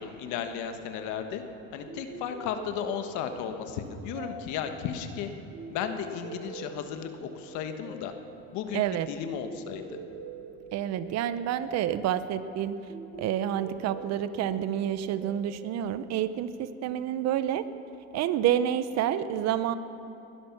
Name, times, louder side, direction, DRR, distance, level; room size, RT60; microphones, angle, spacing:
voice 1, 0.0-1.4 1.7-5.3 5.7-8.1 8.5-10.0, left 8 dB, 80° left, 7 dB, 1.4 m, -34 dB
sound 1, 1.9-16.6, right 4 dB, 85° right, 4.5 m, -45 dB
voice 2, 8.7-9.1 10.7-12.9 13.2-17.7 18.1-19.7, right 10 dB, 65° right, 13 dB, 0.8 m, -28 dB
20.5 x 11.0 x 6.1 m, 3.0 s
cardioid pair, 105°, 29 cm